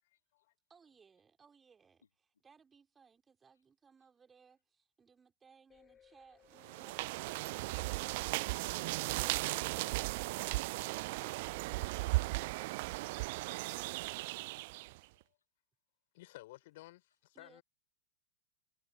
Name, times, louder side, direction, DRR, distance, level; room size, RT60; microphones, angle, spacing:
voice 1, 0.0-0.5 13.4-13.5 14.2-14.5 15.1-15.4 16.1-17.6, left 18 dB, 50° left, 6.2 m, -56 dB
voice 2, 0.7-8.1 17.3-17.6, right 6 dB, 15° right, 3.8 m, -64 dB
sound 1, 5.7-12.7, left 8 dB, 25° left, 2.8 m, -66 dB
sound 2, 6.6-15.0, right 22 dB, 50° right, 0.4 m, -36 dB
voice 3, 8.6-11.5 11.8-11.9 13.0-13.1 14.6-14.7, left 6 dB, 70° left, 1.9 m, -62 dB
figure-of-eight pair, 90°, 0 cm